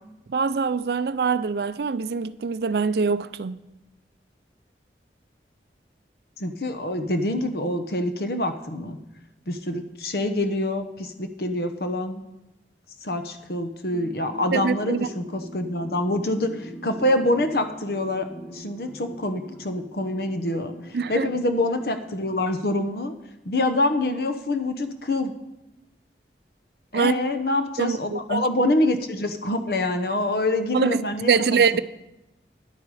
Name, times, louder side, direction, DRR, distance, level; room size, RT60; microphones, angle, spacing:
voice 1, 0.3-3.6 14.5-15.1 20.9-21.3 26.9-27.1 27.8-28.5 30.7-31.8, right 5 dB, 65° right, 0.4 m, -24 dB
voice 2, 6.4-9.0 9.5-12.2 13.0-23.1 23.4-25.3 26.9-31.6, left 1 dB, 60° left, 1.0 m, -26 dB
sound 1, 13.9-22.7, equal, 30° left, 1.3 m, -42 dB
12.5 x 10.5 x 4.9 m
head